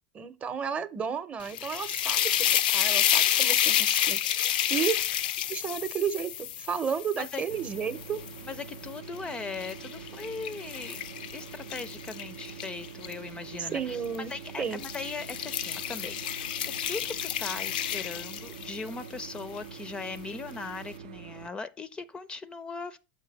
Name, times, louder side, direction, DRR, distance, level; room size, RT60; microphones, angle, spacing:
voice 1, 0.1-4.2 4.7-5.0 5.5-8.2 13.7-14.3 14.6-14.8, right 7 dB, 25° right, 0.7 m, -32 dB
sound 1, 1.4-8.6 9.2-13.1 14.0-14.3 14.7-18.9, left 11 dB, 80° left, 0.4 m, -29 dB
sound 2, 7.5-21.5, right 7 dB, 75° right, 0.5 m, -45 dB
voice 2, 8.4-11.0 11.3-14.0 14.3-16.4 16.8-23.0, left 4 dB, 20° left, 0.4 m, -39 dB
6.6 x 4.6 x 4.0 m
hypercardioid pair, 110°, 5 cm